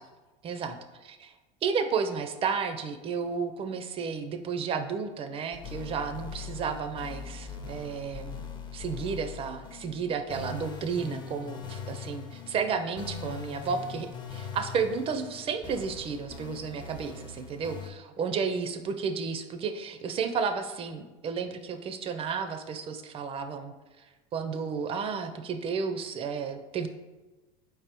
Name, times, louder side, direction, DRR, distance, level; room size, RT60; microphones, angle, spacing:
voice 1, 0.4-0.8 1.6-8.5 8.7-23.7 24.3-26.9, right 5 dB, 30° right, 8 dB, 0.4 m, -32 dB
sound 1, 5.5-17.9, left 5 dB, 25° left, 0.6 m, -41 dB
4.6 x 3.4 x 2.9 m, 1.2 s
hypercardioid pair, 100°, 18 cm